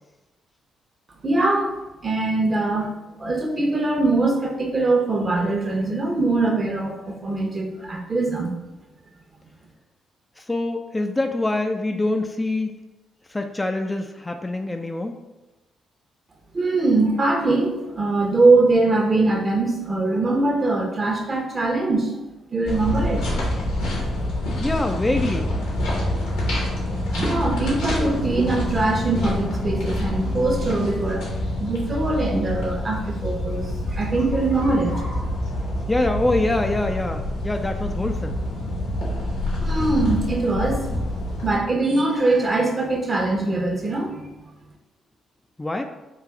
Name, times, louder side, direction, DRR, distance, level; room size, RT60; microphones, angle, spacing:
voice 1, 1.2-1.7 2.0-2.9 3.2-8.5 16.5-22.1 22.5-23.2 27.1-31.3 31.6-34.9 39.6-40.9 41.4-44.2, right 2 dB, 40° right, 3 dB, 0.8 m, -22 dB
voice 2, 10.4-12.7 13.3-15.2 24.6-25.5 35.9-38.4 45.6-45.8, left 2 dB, 20° left, 5 dB, 0.3 m, -25 dB
sound 1, 22.7-41.6, left 1 dB, 80° left, 1.1 m, -26 dB
3.2 x 2.4 x 3.6 m, 1.0 s
hypercardioid pair, 45°, 0 cm